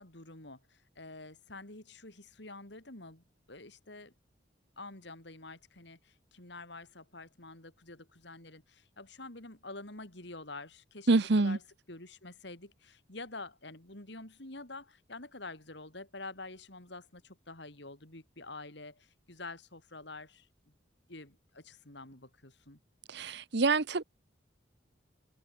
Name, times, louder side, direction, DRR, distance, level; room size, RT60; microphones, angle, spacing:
voice 1, 0.0-4.1 4.8-11.6 11.9-20.5 21.1-22.8, left 2 dB, 60° left, 3.7 m, -48 dB
voice 2, 11.1-11.6 23.1-24.0, right 3 dB, 55° right, 0.8 m, -26 dB
head